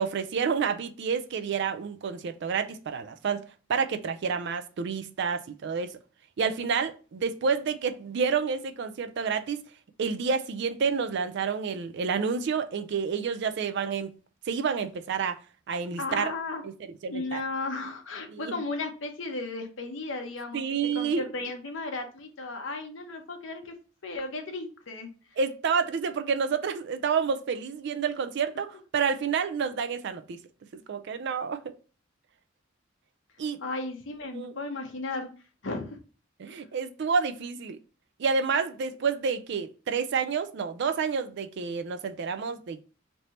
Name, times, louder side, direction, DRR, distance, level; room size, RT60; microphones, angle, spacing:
voice 1, 0.0-6.0 6.4-9.6 10.0-14.1 14.5-15.4 15.7-16.3 16.6-16.7 17.0-17.4 18.3-18.6 20.5-21.2 25.4-30.4 30.7-31.7 33.4-33.6 34.3-34.5 36.4-37.8 38.2-42.8, right 5 dB, 60° right, 0.4 m, -29 dB
voice 2, 16.0-16.6 17.1-20.6 20.9-23.8 24.0-25.1 33.6-35.3 35.6-36.0, left 3 dB, 70° left, 0.8 m, -35 dB
3.3 x 2.6 x 4.2 m
head